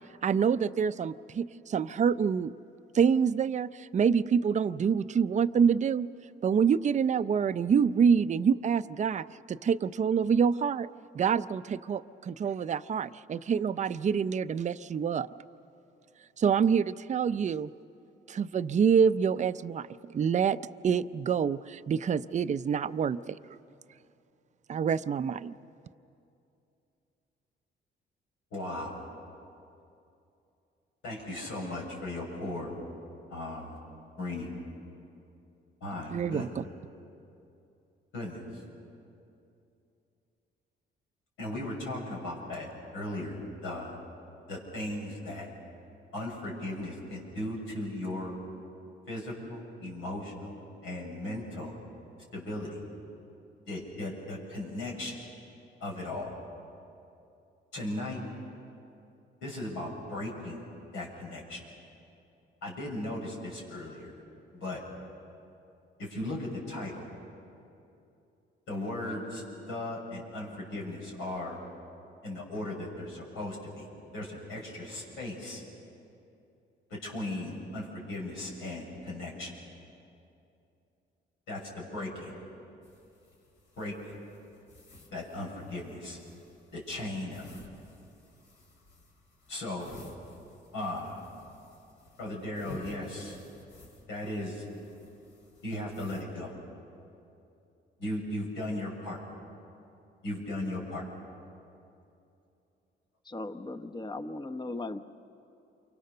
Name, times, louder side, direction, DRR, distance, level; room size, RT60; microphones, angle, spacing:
voice 1, 0.2-2.5 2.9-6.1 6.4-10.9 11.1-15.3 16.4-17.7 18.3-19.9 20.1-20.6 20.8-23.6 24.7-25.5 36.1-36.6, right 7 dB, 35° right, 12 dB, 0.5 m, -26 dB
voice 2, 28.5-29.0 31.0-32.7 33.3-33.8 34.2-34.5 35.8-36.5 38.1-38.6 41.4-44.0 44.5-45.5 46.1-48.4 49.1-50.6 50.8-51.7 52.3-52.8 53.7-55.2 55.8-56.3 57.7-58.2 59.4-60.6 60.9-61.6 62.6-64.2 64.5-64.8 66.0-67.1 68.7-71.6 72.2-73.9 74.1-75.6 76.9-79.6 81.5-82.3 83.8-84.1 85.1-86.2 86.7-87.5 89.5-89.9 90.7-91.3 92.2-93.4 94.1-94.6 95.6-96.5 98.0-99.2 100.2-101.1, left 1 dB, 90° left, -2 dB, 6.9 m, -37 dB
sound 1, 82.8-96.2, left 2 dB, 70° left, 5.1 m, -54 dB
voice 3, 103.2-105.0, left 2 dB, 20° left, 7 dB, 1.0 m, -37 dB
28.5 x 24.5 x 6.8 m, 2.7 s
cardioid pair, 90°, 20 cm